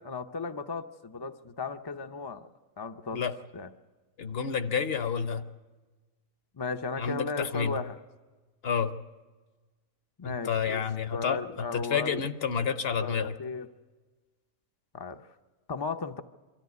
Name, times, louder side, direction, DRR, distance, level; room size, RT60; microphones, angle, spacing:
voice 1, 0.0-2.5 2.8-3.2 3.5-3.7 6.5-8.0 10.2-10.8 11.1-12.3 13.0-13.7 14.9-15.3 15.7-16.2, left 4 dB, 30° left, 7 dB, 0.4 m, -35 dB
voice 2, 4.2-5.4 7.0-7.8 8.6-8.9 10.2-13.3, left 6 dB, 55° left, 11 dB, 1.0 m, -30 dB
24.0 x 13.5 x 9.4 m, 1.3 s
omnidirectional pair, 1.3 m